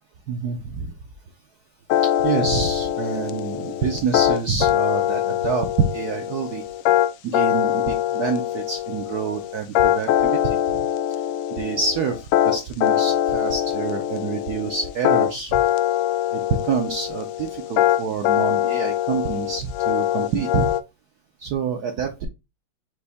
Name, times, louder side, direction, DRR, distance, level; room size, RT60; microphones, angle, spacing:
voice 1, 0.3-0.9 2.0-6.6 7.2-10.8 11.5-15.6 16.3-20.7 21.4-22.3, right 5 dB, 75° right, 4 dB, 0.9 m, -27 dB
sound 1, 1.9-20.8, left 12 dB, 85° left, 1.5 m, -23 dB
5.4 x 2.7 x 3.4 m, 0.24 s
omnidirectional pair, 2.4 m